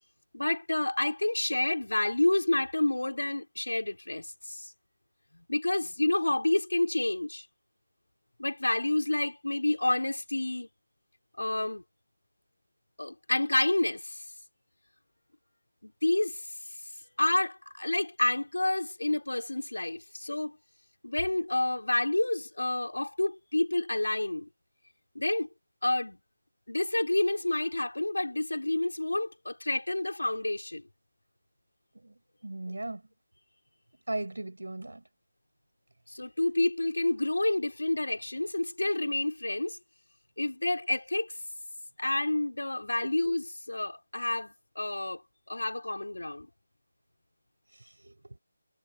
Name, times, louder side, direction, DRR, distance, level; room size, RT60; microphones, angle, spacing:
voice 1, 0.3-4.7 5.3-7.5 8.4-10.7 11.4-11.8 13.0-14.3 15.8-16.5 17.2-20.6 21.0-24.5 25.2-25.5 25.8-26.2 26.7-30.8 32.7-32.8 36.1-39.8 40.4-41.4 42.0-45.2 45.5-46.5, left 2 dB, 80° left, 3.8 m, -29 dB
voice 2, 32.4-33.0 34.1-35.0 43.0-43.1 48.0-48.4, right 2 dB, 80° right, 6.5 m, -37 dB
figure-of-eight pair, 160°, 0 cm